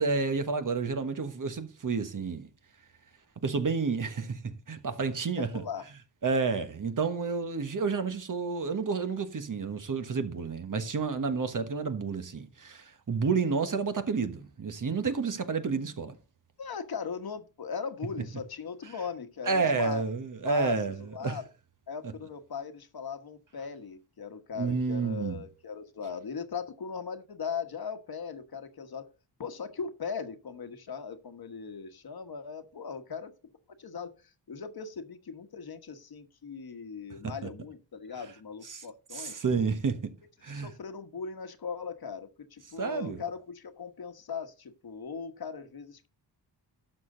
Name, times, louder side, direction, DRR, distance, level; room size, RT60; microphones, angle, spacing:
voice 1, 0.0-2.5 3.4-4.4 4.7-5.5 6.2-16.1 19.5-21.0 21.2-21.4 24.6-25.4 38.7-38.8 39.1-40.0 40.4-40.7 42.8-43.2, right 4 dB, 45° right, 1.3 m, -30 dB
voice 2, 5.4-5.9 16.6-20.0 20.4-21.5 21.9-29.1 29.4-33.3 33.8-39.4 40.5-46.1, left 6 dB, 60° left, 1.4 m, -39 dB
12.0 x 6.9 x 3.8 m
wide cardioid pair, 100°, 42 cm